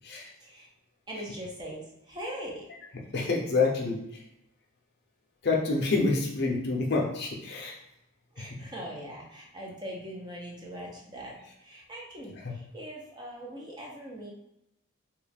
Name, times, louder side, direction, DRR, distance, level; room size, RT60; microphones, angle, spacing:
voice 1, 1.1-2.6 8.3-14.3, equal, 20° right, -3 dB, 0.6 m, -41 dB
voice 2, 3.1-4.2 5.4-7.8 8.4-8.5, left 3 dB, 50° left, -1 dB, 0.6 m, -27 dB
3.0 x 2.3 x 3.3 m, 0.84 s
head